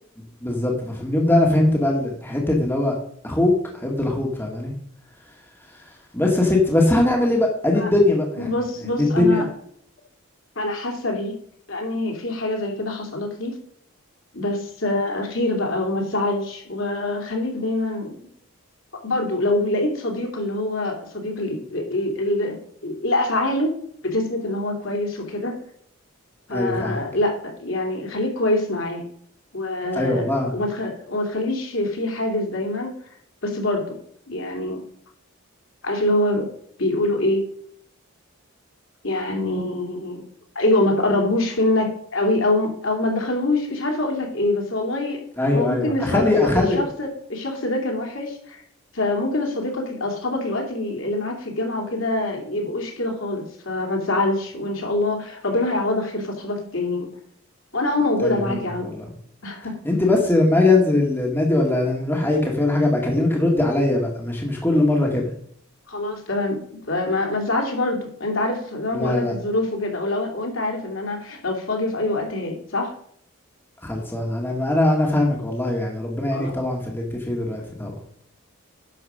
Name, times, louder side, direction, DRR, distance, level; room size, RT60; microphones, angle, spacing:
voice 1, 0.4-3.0 3.2-4.7 6.1-8.5 8.9-9.5 26.5-27.0 29.9-30.5 45.4-46.8 58.2-59.0 59.8-65.3 68.9-69.3 73.8-77.9, left 2 dB, 10° left, -1 dB, 1.8 m, -21 dB
voice 2, 8.4-9.5 10.6-11.4 11.7-13.6 14.3-18.2 19.0-23.7 24.0-25.5 26.5-29.1 29.5-30.2 30.5-32.9 33.4-34.0 34.3-34.8 35.8-36.5 36.8-37.4 39.0-40.2 40.5-45.2 45.5-48.6 48.9-57.1 57.7-58.9 59.4-59.8 65.9-72.9 76.3-76.5, left 2 dB, 60° left, 1 dB, 2.8 m, -25 dB
11.0 x 7.1 x 5.0 m, 0.64 s
head